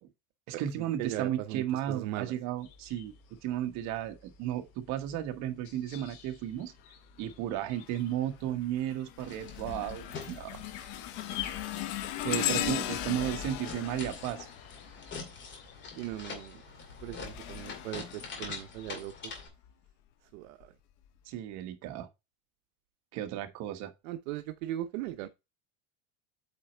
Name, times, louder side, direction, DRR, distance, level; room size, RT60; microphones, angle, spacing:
voice 1, 0.5-3.1 3.4-6.7 7.2-10.6 12.2-14.5 21.3-22.1 23.1-23.9, right 11 dB, 40° right, 1.3 m, -34 dB
voice 2, 1.0-2.3 12.5-12.8 16.0-16.6 17.0-19.4 20.3-20.7 24.0-25.3, right 14 dB, 65° right, 0.8 m, -38 dB
sound 1, 2.6-19.0, left 9 dB, 70° left, 2.8 m, -51 dB
sound 2, 7.7-8.1 8.6-15.4 16.7-18.9 19.5-19.7 20.6-20.7, left 13 dB, 45° left, 0.8 m, -38 dB
sound 3, 9.2-19.5, left 5 dB, 25° left, 2.1 m, -44 dB
8.5 x 4.2 x 4.3 m
cardioid pair, 175°, 43 cm